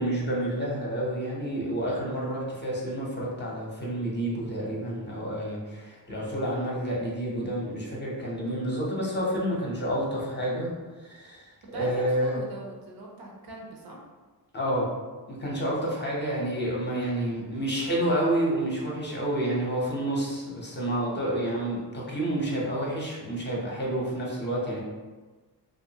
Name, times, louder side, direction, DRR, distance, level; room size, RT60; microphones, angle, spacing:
voice 1, 0.0-10.7 11.0-12.4 14.5-14.9 15.3-24.8, right 1 dB, 25° left, -4 dB, 0.7 m, -29 dB
voice 2, 11.7-14.0, right 1 dB, 60° right, -1 dB, 0.7 m, -40 dB
2.7 x 2.5 x 2.7 m, 1.3 s
cardioid pair, 100°, 41 cm